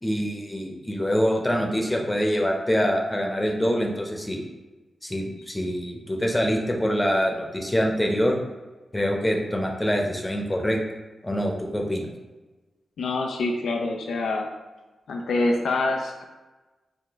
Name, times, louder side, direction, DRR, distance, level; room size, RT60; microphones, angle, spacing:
voice 1, 0.0-4.4 5.0-8.4 8.9-10.8 11.2-12.1, equal, 15° left, 1 dB, 0.7 m, -25 dB
voice 2, 13.0-14.5 15.1-16.2, left 2 dB, 85° left, 2 dB, 0.3 m, -26 dB
4.9 x 2.2 x 3.4 m, 1.2 s
cardioid pair, 55°, 0 cm